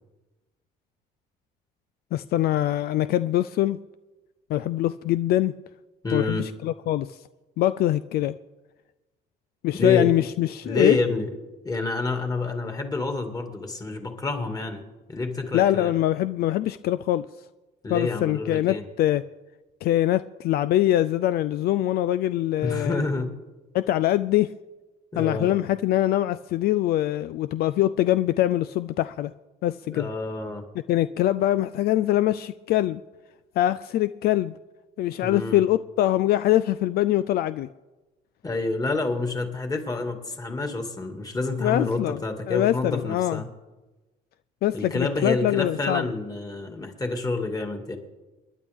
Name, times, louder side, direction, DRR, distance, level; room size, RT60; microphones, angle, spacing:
voice 1, 2.1-3.8 4.5-5.5 6.1-7.2 7.6-8.4 9.6-11.0 15.5-17.3 17.9-19.2 19.8-23.0 23.7-24.5 25.2-29.3 29.6-30.1 30.9-33.0 33.6-34.6 35.0-37.7 41.6-42.2 42.5-43.4 44.6-46.1, left 13 dB, 65° left, 0.4 m, -23 dB
voice 2, 6.0-6.5 9.7-10.1 10.6-11.3 11.6-14.8 15.1-15.9 17.8-18.8 22.6-23.3 25.1-25.5 29.9-30.6 35.2-35.6 38.4-43.5 44.7-48.0, left 3 dB, 20° left, 2.2 m, -28 dB
28.5 x 10.5 x 3.6 m
cardioid pair, 110°, 17 cm